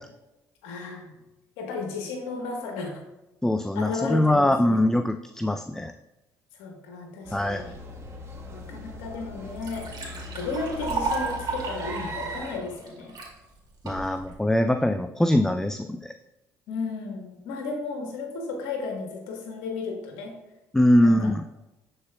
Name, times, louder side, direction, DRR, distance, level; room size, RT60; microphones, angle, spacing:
voice 1, 0.6-1.1 1.6-3.0 3.7-4.8 6.5-7.8 8.5-9.9 10.3-13.2 16.7-20.4 21.0-21.3, left 4 dB, 85° left, 2 dB, 1.2 m, -34 dB
voice 2, 3.4-5.9 7.3-7.6 13.8-16.1 20.7-21.5, left 1 dB, 5° left, 8 dB, 0.3 m, -22 dB
sound 1, 7.2-12.6, equal, 35° right, 1.3 m, -38 dB
Liquid, 9.3-13.3 13.9-14.3, right 3 dB, 55° right, 2.2 m, -33 dB
11.0 x 4.4 x 2.2 m, 0.99 s
hypercardioid pair, 60°, 9 cm